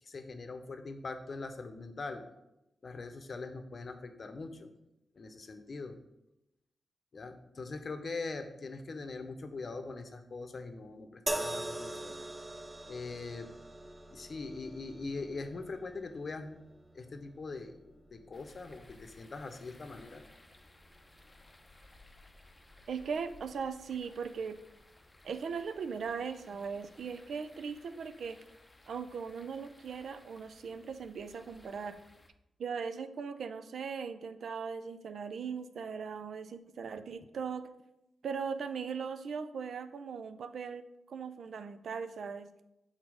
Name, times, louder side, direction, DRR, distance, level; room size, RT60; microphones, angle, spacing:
voice 1, 0.0-2.2 2.8-4.7 5.2-6.0 7.1-12.2 12.9-13.5 14.1-16.6 16.9-20.2, left 3 dB, 50° left, 7 dB, 0.7 m, -42 dB
sound 1, 11.3-24.6 25.5-25.7, right 1 dB, 25° right, 0.6 m, -45 dB
sound 2, 18.3-32.3, left 2 dB, 20° left, 0.6 m, -60 dB
voice 2, 22.9-24.6 25.2-28.4 28.9-32.0 32.6-37.7 38.2-42.5, right 6 dB, 75° right, 11 dB, 0.4 m, -39 dB
6.1 x 4.0 x 4.7 m, 0.88 s
cardioid pair, 65°, 0 cm